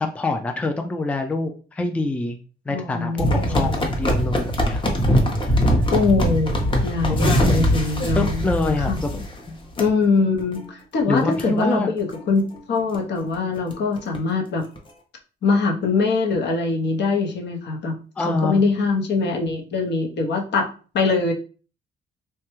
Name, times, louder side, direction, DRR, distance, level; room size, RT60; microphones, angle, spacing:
voice 1, 0.0-2.4 2.7-5.0 5.4-5.5 7.1-7.7 8.2-9.6 11.1-11.9 18.2-18.6, left 2 dB, 5° left, 5 dB, 0.3 m, -25 dB
voice 2, 2.7-3.8 5.9-8.4 8.8-9.0 9.8-14.6 15.4-21.3, left 4 dB, 60° left, 2 dB, 0.8 m, -23 dB
sound 1, 3.2-9.4 9.8-9.9 10.4-10.6 11.0-11.1 11.3-11.4 12.0-12.2 12.6-12.7 12.9-13.0 13.3-14.2 14.8-14.9, equal, 25° left, 0.7 m, -22 dB
3.2 x 2.2 x 3.0 m, 0.38 s
cardioid pair, 90°, 20 cm